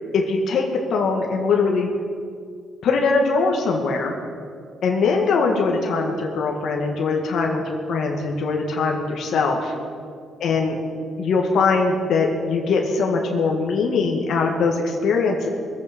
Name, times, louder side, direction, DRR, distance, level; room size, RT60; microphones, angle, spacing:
voice 1, 0.1-1.9 2.8-4.1 4.8-9.7 10.4-10.8 11.2-15.5, left 4 dB, 70° left, 1 dB, 1.9 m, -21 dB
22.0 x 8.7 x 5.3 m, 2.2 s
cardioid pair, 90°, 0 cm